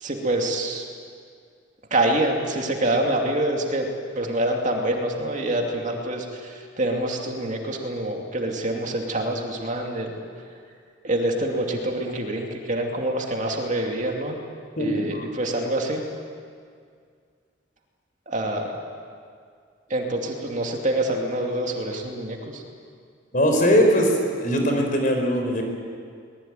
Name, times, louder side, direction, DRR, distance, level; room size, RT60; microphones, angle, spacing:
voice 1, 0.0-0.8 1.9-3.9 4.2-6.5 6.8-10.2 11.0-14.4 14.8-16.0 18.3-18.7 19.9-22.6, right 1 dB, 40° right, 1 dB, 2.6 m, -26 dB
voice 2, 14.8-15.2 23.3-24.1 24.4-25.6, equal, 45° left, 3 dB, 4.3 m, -20 dB
23.5 x 20.5 x 9.3 m, 2.2 s
head